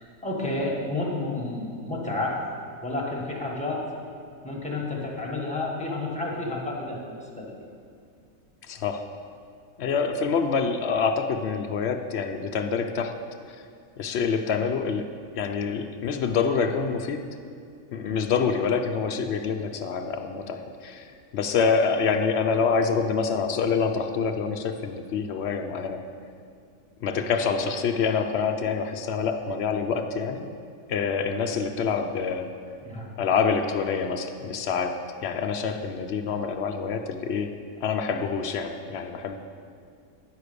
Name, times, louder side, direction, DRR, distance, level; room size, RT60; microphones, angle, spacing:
voice 1, 0.0-2.4 2.8-3.8 4.4-7.5 32.8-33.1, left 2 dB, 5° left, -4 dB, 1.2 m, -30 dB
voice 2, 8.7-9.1 9.8-13.2 14.0-17.3 17.9-21.1 21.3-26.0 27.0-30.5 30.9-32.5 33.2-39.4, left 5 dB, 65° left, 5 dB, 0.7 m, -26 dB
10.0 x 4.8 x 6.7 m, 2.3 s
omnidirectional pair, 1.5 m